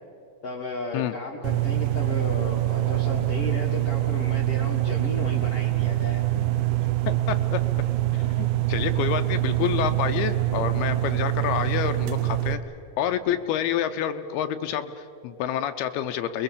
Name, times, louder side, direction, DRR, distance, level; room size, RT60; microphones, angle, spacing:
voice 1, 0.4-6.3, left 2 dB, 60° left, -1 dB, 1.6 m, -34 dB
sound 1, 1.4-12.6, right 16 dB, 80° right, 3.1 m, -25 dB
voice 2, 7.1-7.6 8.4-12.6 13.0-16.4, left 10 dB, 80° left, 8 dB, 2.4 m, -28 dB
29.5 x 21.5 x 7.3 m, 2.8 s
omnidirectional pair, 5.0 m